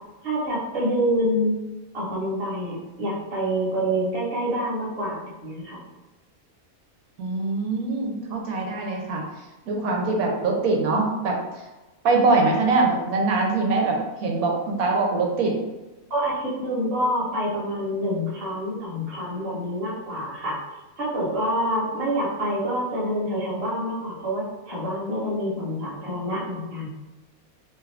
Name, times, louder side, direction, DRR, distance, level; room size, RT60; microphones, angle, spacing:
voice 1, 0.2-1.6 1.9-5.8 16.1-20.6 21.0-26.9, equal, 30° right, -6 dB, 0.9 m, -27 dB
voice 2, 7.2-9.2 9.7-11.4 12.0-15.5, right 3 dB, 85° right, 0 dB, 1.1 m, -23 dB
2.9 x 2.4 x 3.2 m, 1.1 s
omnidirectional pair, 1.5 m